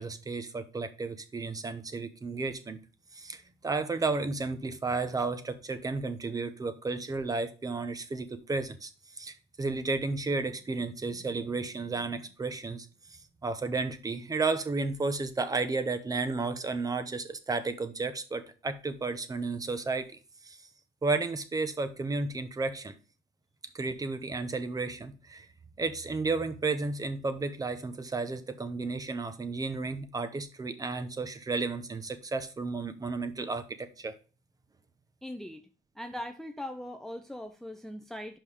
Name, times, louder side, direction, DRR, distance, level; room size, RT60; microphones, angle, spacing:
voice 1, 0.0-2.8 3.1-20.6 21.0-22.9 23.7-25.5 25.8-34.1, right 3 dB, 20° right, 0.8 m, -33 dB
voice 2, 35.2-35.7 36.0-38.4, left 1 dB, ahead, 0.5 m, -40 dB
5.5 x 5.3 x 4.8 m
cardioid pair, 110°, 17 cm